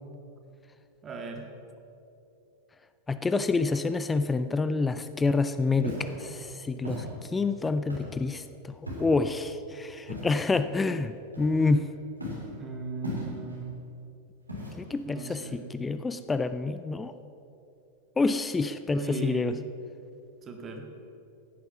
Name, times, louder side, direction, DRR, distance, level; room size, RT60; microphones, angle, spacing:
voice 1, 1.0-1.4 12.6-13.7 15.0-15.7 18.8-19.6 20.4-20.9, right 5 dB, 25° right, 3 dB, 1.9 m, -37 dB
voice 2, 3.1-8.7 9.0-11.9 14.8-17.1 18.2-19.5, left 3 dB, 15° left, 12 dB, 0.4 m, -28 dB
Walk footsteps, 5.8-6.2 6.8-7.1 7.9-8.2 8.9-9.2 10.1-10.4 11.3-11.8 12.2-12.5 13.0-13.6 14.5-15.0, left 1 dB, 85° right, 3.3 m, -37 dB
15.5 x 9.2 x 6.0 m, 2.7 s
figure-of-eight pair, 90°, 0 cm